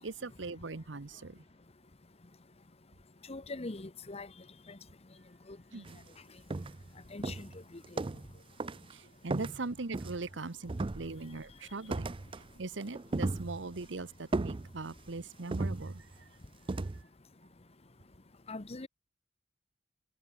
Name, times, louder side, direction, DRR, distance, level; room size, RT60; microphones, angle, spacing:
voice 1, 0.0-1.4 5.7-6.0 8.9-12.1 12.6-16.0, right 3 dB, 70° right, 1.0 m, -40 dB
voice 2, 3.3-4.3 4.7-4.8 5.5-5.6 7.1-7.5 18.5-18.9, left 2 dB, 35° left, 1.0 m, -41 dB
sound 1, 5.8-6.0 6.5-6.9 7.2-8.3 8.6-8.9 9.3-10.4 10.7-11.4 11.9-12.5 12.8-13.9 14.3-15.1 15.5-16.2 16.7-17.0, right 2 dB, 30° right, 0.5 m, -36 dB
head